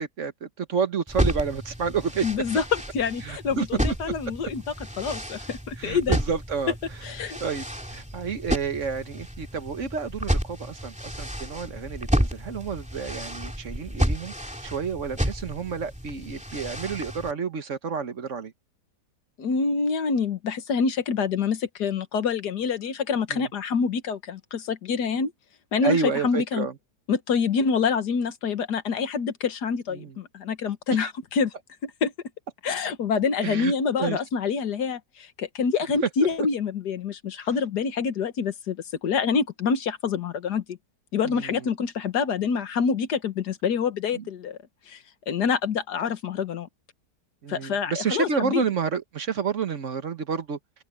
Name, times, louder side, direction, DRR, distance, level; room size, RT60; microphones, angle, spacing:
voice 1, 0.0-2.2 3.2-4.1 5.8-6.7 7.4-14.3 14.6-18.5 23.3-23.5 25.8-26.7 29.9-30.1 30.9-31.1 33.4-33.7 34.0-34.2 41.2-41.6 44.1-44.2 47.4-50.6, right 6 dB, 50° right, 1.4 m, -30 dB
sound 1, 1.1-17.3, equal, 5° right, 2.8 m, -31 dB
voice 2, 2.2-4.6 5.0-6.2 7.0-7.4 19.4-25.3 25.7-26.7 27.1-31.5 31.8-32.1 32.6-38.8 39.0-40.8 41.1-44.6 44.9-45.0 45.3-46.7 47.5-48.6, left 5 dB, 85° left, 1.9 m, -26 dB
omnidirectional pair, 1.7 m